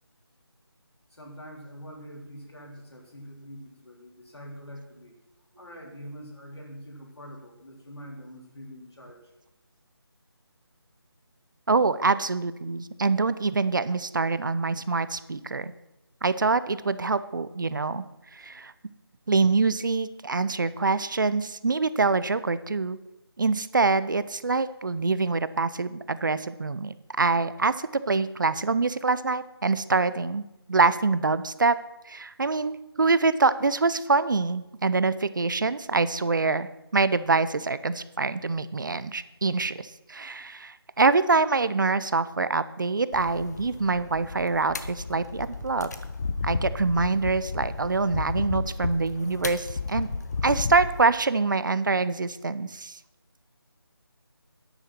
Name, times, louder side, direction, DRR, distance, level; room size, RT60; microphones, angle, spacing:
voice 1, 1.1-5.2 5.6-9.3, equal, 85° left, 0 dB, 4.1 m, -44 dB
voice 2, 11.7-15.7 16.2-18.0 18.3-18.7 19.3-23.0 23.4-31.8 32.0-45.9 46.4-50.1 50.4-53.0, right 4 dB, 50° right, 15 dB, 0.6 m, -25 dB
sound 1, 43.1-51.0, left 4 dB, 40° left, 0.8 m, -33 dB
9.8 x 9.0 x 6.0 m, 0.96 s
figure-of-eight pair, 165°, 13 cm